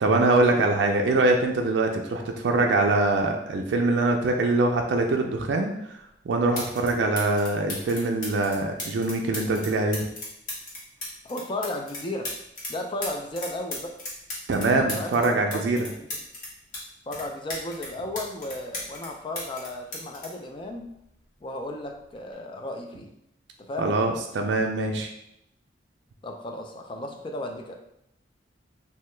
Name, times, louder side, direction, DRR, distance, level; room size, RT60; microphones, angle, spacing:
voice 1, 0.0-5.7 6.3-10.0 14.5-15.8 23.8-25.1, right 2 dB, 70° right, 3 dB, 0.4 m, -23 dB
sound 1, 6.5-6.9 7.2-12.7 13.0-16.8 17.1-19.1 19.4-21.2 22.1-22.3, left 2 dB, 45° left, 0.9 m, -36 dB
voice 2, 11.2-12.3 12.7-14.0 14.6-16.1 17.1-20.9 21.4-23.1 23.6-24.0 26.2-27.7, left 1 dB, 25° left, 3 dB, 0.3 m, -34 dB
2.8 x 2.2 x 3.2 m, 0.79 s
head